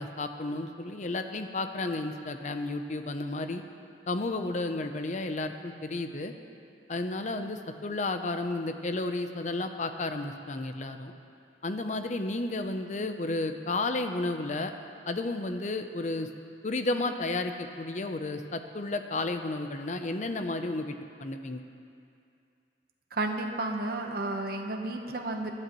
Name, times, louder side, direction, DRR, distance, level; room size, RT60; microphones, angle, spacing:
voice 1, 0.0-3.6 4.1-6.3 6.9-11.1 11.6-14.7 15.1-16.3 16.6-21.6, left 2 dB, 45° left, 7 dB, 0.6 m, -32 dB
voice 2, 23.1-25.5, right 2 dB, 55° right, 3 dB, 1.0 m, -32 dB
18.5 x 12.0 x 3.1 m, 2.5 s
head